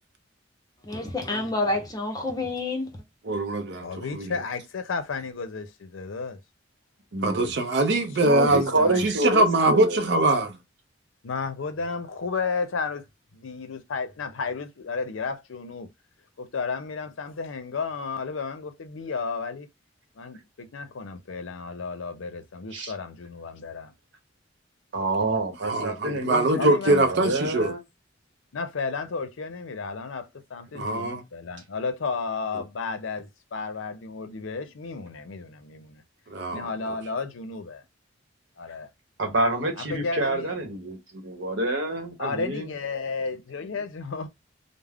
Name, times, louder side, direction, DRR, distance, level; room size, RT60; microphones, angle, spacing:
voice 1, 0.8-2.9, left 2 dB, 20° left, 0.7 m, -28 dB
voice 2, 3.2-4.4 7.2-8.7 9.0-10.6 25.6-27.7 30.7-31.2 36.3-36.7, right 2 dB, 55° right, 0.5 m, -23 dB
voice 3, 3.8-6.4 8.0-8.1 8.4-9.1 11.2-13.0 13.3-15.9 16.4-19.7 20.2-23.9 26.6-27.0 28.5-36.0 36.5-37.8 38.6-38.9 39.8-40.5 42.2-44.3, left 4 dB, 85° left, 0.5 m, -33 dB
voice 4, 7.1-7.5 8.2-10.1 22.7-22.9 24.9-27.8 39.2-42.7, right 2 dB, 75° right, 0.9 m, -27 dB
2.3 x 2.0 x 3.3 m
head